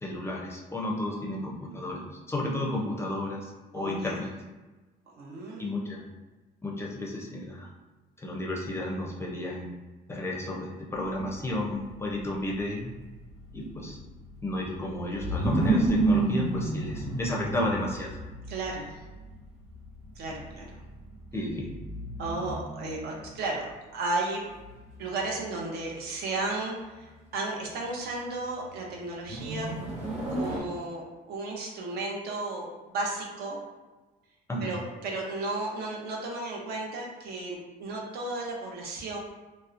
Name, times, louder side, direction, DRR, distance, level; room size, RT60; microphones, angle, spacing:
voice 1, 0.0-2.0 2.3-4.3 5.6-6.0 6.6-7.7 8.2-9.7 10.1-12.9 13.5-14.0 14.4-18.2 21.3-21.7 34.5-34.7, left 1 dB, 15° left, -2 dB, 0.4 m, -32 dB
voice 2, 3.7-4.2 5.2-5.7 18.5-19.0 20.2-20.8 22.2-23.7 23.9-24.5 25.0-29.7 30.3-33.6 34.6-39.2, right 2 dB, 70° right, -1 dB, 0.6 m, -34 dB
sound 1, 11.0-23.4 24.6-25.4 29.2-30.6, right 2 dB, 45° right, 0.9 m, -31 dB
2.7 x 2.0 x 2.4 m, 1.2 s
cardioid pair, 110°, 17 cm